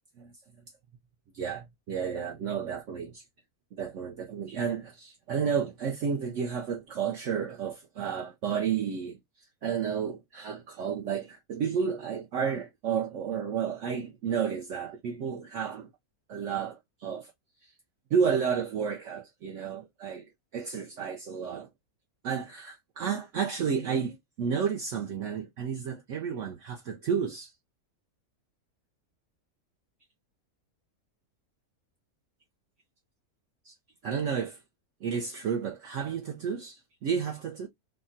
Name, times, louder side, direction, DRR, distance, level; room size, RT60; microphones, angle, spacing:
voice 1, 1.3-3.2 3.8-9.2 9.6-15.9 16.3-17.3 18.1-21.7 22.2-27.5 33.6-33.7 34.0-34.6 35.0-37.7, right 7 dB, 65° right, 0.8 m, -31 dB
3.5 x 2.1 x 2.5 m
omnidirectional pair, 1.6 m